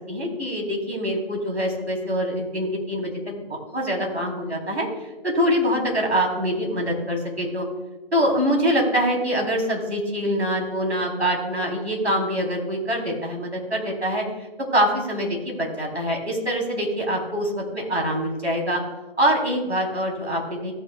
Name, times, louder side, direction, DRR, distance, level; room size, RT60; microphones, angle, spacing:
voice 1, 0.1-4.9 5.2-7.7 8.1-14.2 14.7-18.8 19.2-20.7, equal, 85° right, 0 dB, 3.7 m, -24 dB
16.0 x 9.3 x 2.4 m, 1.0 s
figure-of-eight pair, 145°, 32 cm